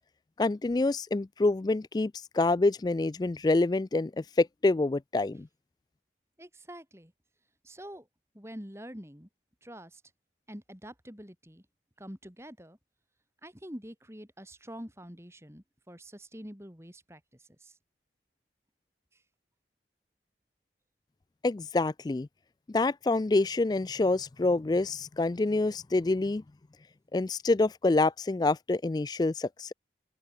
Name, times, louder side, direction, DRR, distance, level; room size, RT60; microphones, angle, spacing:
voice 1, 0.4-5.5 21.4-22.3 22.7-26.4 27.1-29.7, left 2 dB, 25° left, 0.3 m, -27 dB
voice 2, 6.4-7.1 7.6-8.1 8.3-9.3 9.6-10.0 10.5-11.6 12.0-12.8 13.4-17.2 17.6-17.7, equal, 15° right, 5.2 m, -46 dB
open air
head